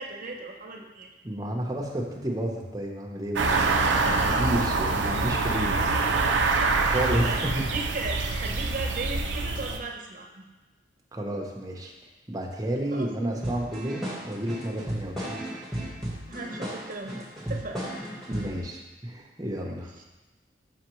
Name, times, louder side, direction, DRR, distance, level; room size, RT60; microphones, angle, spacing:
voice 1, 0.0-1.1 7.2-10.4 12.9-13.1 16.3-17.9 19.6-20.0, right 3 dB, 50° right, 0 dB, 0.8 m, -37 dB
voice 2, 1.2-5.8 6.8-7.6 11.1-11.9 12.3-15.4 18.3-19.9, right 1 dB, 20° right, -1 dB, 0.8 m, -31 dB
sound 1, 3.4-9.8, right 3 dB, 85° right, 0.5 m, -25 dB
sound 2, 13.4-18.6, equal, ahead, 1.3 m, -35 dB
5.9 x 5.7 x 3.0 m, 1.1 s
head